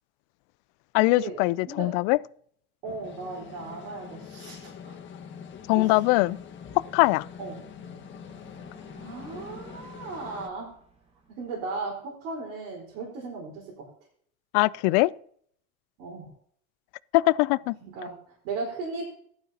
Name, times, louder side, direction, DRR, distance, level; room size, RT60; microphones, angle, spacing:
voice 1, 0.9-2.2 5.7-6.4 6.9-7.3 14.5-15.1 17.1-17.8, left 21 dB, 75° left, 0.5 m, -22 dB
sound 1, 2.8-10.5, left 7 dB, 40° left, 1.6 m, -44 dB
voice 2, 2.8-5.0 5.7-6.0 7.4-7.6 9.0-10.7 11.4-13.9 16.0-16.3 17.8-19.1, right 3 dB, 75° right, 4.6 m, -36 dB
sound 2, 5.2-11.8, right 3 dB, 20° right, 3.0 m, -55 dB
15.0 x 12.0 x 2.9 m
supercardioid pair, 100°, 29 cm